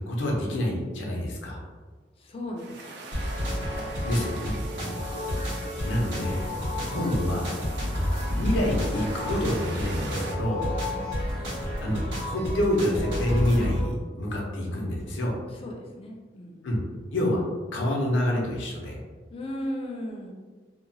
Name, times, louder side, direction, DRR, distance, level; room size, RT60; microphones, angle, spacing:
voice 1, 0.0-1.6 4.0-4.6 5.8-6.4 6.9-7.5 8.4-10.6 11.8-12.0 12.2-15.3 16.6-16.8 17.1-17.4 17.7-19.0, left 1 dB, 80° left, -2 dB, 0.6 m, -27 dB
voice 2, 2.2-2.8 4.7-5.0 10.9-11.2 15.5-16.7 19.3-20.3, left 1 dB, 30° left, 0 dB, 0.4 m, -36 dB
sound 1, 2.6-10.4, right 3 dB, 65° right, 0.4 m, -43 dB
sound 2, 3.1-13.8, left 1 dB, 90° right, 1.1 m, -30 dB
2.8 x 2.1 x 2.6 m, 1.4 s
head